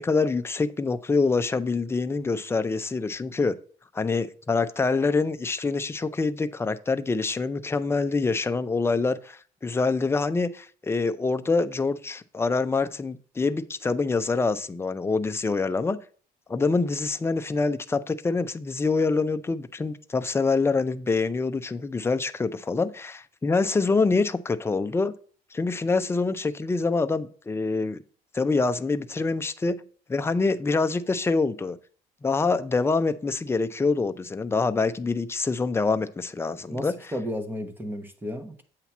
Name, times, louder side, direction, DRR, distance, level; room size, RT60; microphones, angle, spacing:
voice 1, 0.0-3.6 3.9-16.0 16.5-25.1 25.5-28.0 28.3-29.8 30.1-31.8 32.2-37.1, left 4 dB, 15° left, 0.4 m, -25 dB
voice 2, 36.7-38.6, equal, 10° right, 0.9 m, -33 dB
8.1 x 2.9 x 5.9 m
cardioid pair, 110°, 17 cm